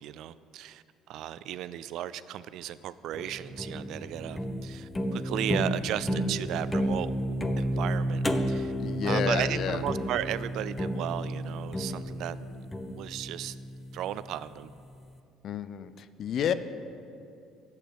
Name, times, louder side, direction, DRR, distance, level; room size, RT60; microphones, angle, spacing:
voice 1, 0.0-8.7 9.0-12.7 12.9-13.6 13.9-14.7, right 12 dB, 70° right, 16 dB, 0.3 m, -35 dB
sound 1, 3.1-14.3, equal, 15° left, 0.8 m, -32 dB
voice 2, 8.8-9.8 15.4-16.5, left 9 dB, 55° left, 13 dB, 0.5 m, -30 dB
8.3 x 6.8 x 8.1 m, 2.5 s
supercardioid pair, 75°, 0 cm